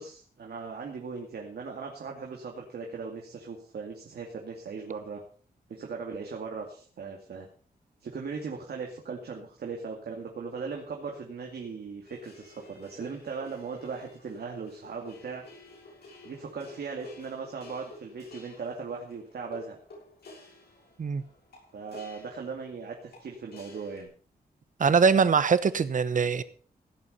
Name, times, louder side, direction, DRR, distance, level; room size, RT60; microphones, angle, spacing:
voice 1, 0.0-5.2 5.7-7.5 8.0-15.4 16.2-19.8 21.7-24.1, right 5 dB, 80° right, 2.3 m, -38 dB
sound 1, 12.0-24.0, left 2 dB, 90° left, 6.7 m, -51 dB
voice 2, 24.8-26.4, right 5 dB, 55° right, 1.0 m, -22 dB
16.0 x 8.3 x 5.6 m
wide cardioid pair, 130°, 16 cm